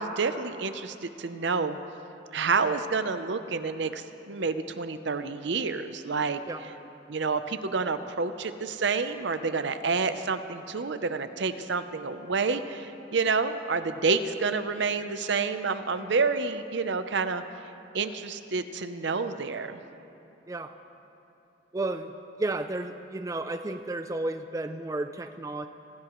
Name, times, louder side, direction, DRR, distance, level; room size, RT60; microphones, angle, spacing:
voice 1, 0.0-1.8 2.3-6.4 7.1-17.4 17.9-19.8, right 4 dB, 60° right, 10 dB, 0.6 m, -29 dB
voice 2, 21.7-22.1 22.4-25.7, right 2 dB, 15° right, 8 dB, 0.4 m, -32 dB
25.5 x 15.5 x 3.1 m, 2.9 s
head